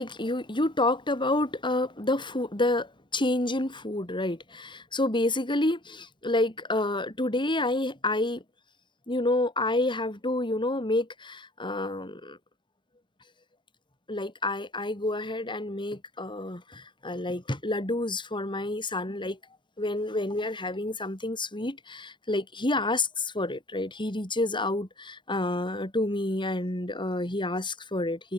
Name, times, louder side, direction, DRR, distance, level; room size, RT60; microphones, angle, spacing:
voice 1, 0.0-8.4 9.1-12.4 14.1-19.4 19.8-28.3, left 2 dB, 20° left, 4.0 m, -29 dB
head